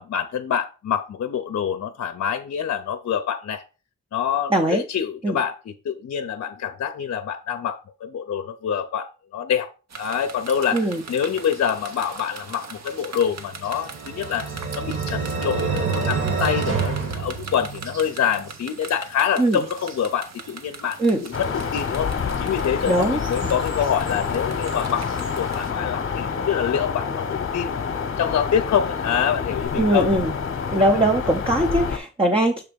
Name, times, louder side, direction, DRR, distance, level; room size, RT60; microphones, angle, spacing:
voice 1, 0.0-3.6 4.1-9.7 10.0-14.5 14.8-22.1 22.4-27.8 28.2-30.1 30.8-30.9, left 8 dB, 60° left, 0.6 m, -26 dB
voice 2, 4.5-4.8 5.2-5.4 10.7-11.0 19.4-19.6 21.0-21.2 22.8-23.2 29.8-30.3 30.7-32.6, right 1 dB, 20° right, 0.7 m, -20 dB
sound 1, 9.9-25.7, right 4 dB, 65° right, 1.1 m, -41 dB
sound 2, 13.5-18.1, right 5 dB, 45° right, 1.5 m, -27 dB
sound 3, 21.3-32.0, left 6 dB, 45° left, 0.9 m, -27 dB
6.9 x 3.3 x 5.1 m
wide cardioid pair, 120°, 29 cm